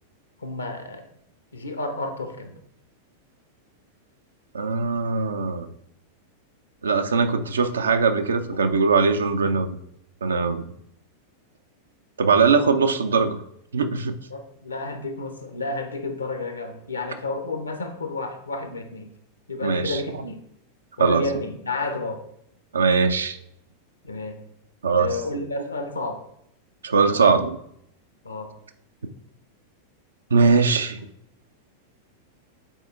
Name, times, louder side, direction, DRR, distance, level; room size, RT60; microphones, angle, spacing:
voice 1, 0.4-1.0 1.5-2.5 8.5-8.6 12.5-12.7 14.3-19.1 19.5-20.4 21.0-22.2 24.0-24.4 25.0-26.3 27.1-27.4 28.2-28.5, left 2 dB, 75° left, 7 dB, 0.9 m, -31 dB
voice 2, 4.5-5.7 6.8-9.8 10.2-10.6 12.2-13.4 13.7-14.2 19.6-20.0 21.0-21.3 22.7-23.4 24.8-25.2 26.8-27.6 30.3-31.0, right 4 dB, 70° right, 9 dB, 0.5 m, -21 dB
7.2 x 4.2 x 3.5 m, 0.73 s
figure-of-eight pair, 90°, 0 cm